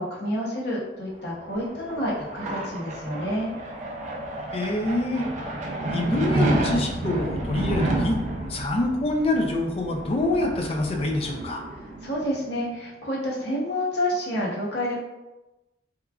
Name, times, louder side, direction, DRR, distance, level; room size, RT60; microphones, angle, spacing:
voice 1, 0.0-3.5 12.0-15.0, equal, 60° left, -4 dB, 0.8 m, -29 dB
sound 1, 1.2-12.5, right 2 dB, 40° right, 0.4 m, -30 dB
voice 2, 4.5-5.2 5.9-8.2 8.5-11.6, left 2 dB, 30° left, 2 dB, 0.3 m, -26 dB
3.0 x 2.4 x 2.2 m, 1.0 s
head